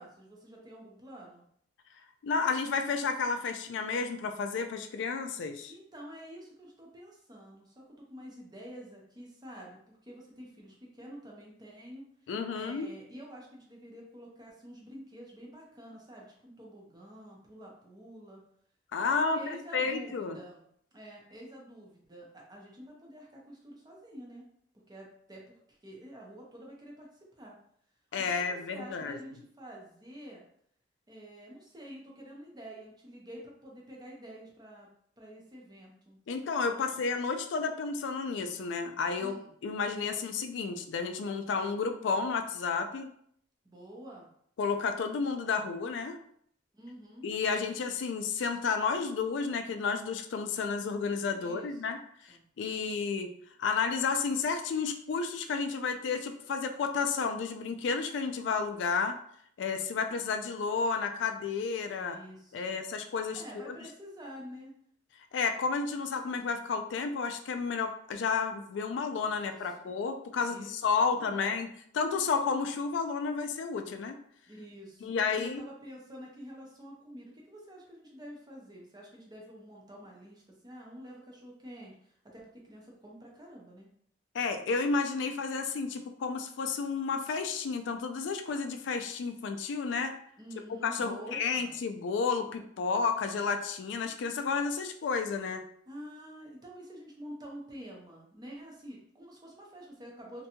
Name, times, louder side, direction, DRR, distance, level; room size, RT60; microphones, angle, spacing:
voice 1, 0.0-1.4 5.7-12.1 12.5-18.4 19.1-20.7 20.9-24.4 24.9-27.1 27.4-27.6 28.3-30.4 31.1-34.9 35.2-36.2 36.7-37.1 39.2-39.5 43.6-44.3 46.7-47.3 51.4-51.8 52.3-52.4 61.9-62.8 63.3-64.7 69.4-69.9 70.3-70.7 71.1-71.6 74.5-83.9 90.4-91.8 95.9-100.5, equal, 20° right, -2 dB, 0.6 m, -48 dB
voice 2, 2.2-5.7 12.3-12.9 18.9-20.4 28.1-29.2 36.3-39.4 39.6-43.1 44.6-46.2 47.2-52.0 52.3-53.3 53.6-59.2 59.6-62.2 62.5-63.7 65.3-71.7 71.9-74.2 75.0-75.6 84.3-90.1 90.8-95.6, left 5 dB, 70° left, 7 dB, 0.3 m, -31 dB
2.6 x 2.2 x 2.8 m, 0.66 s
head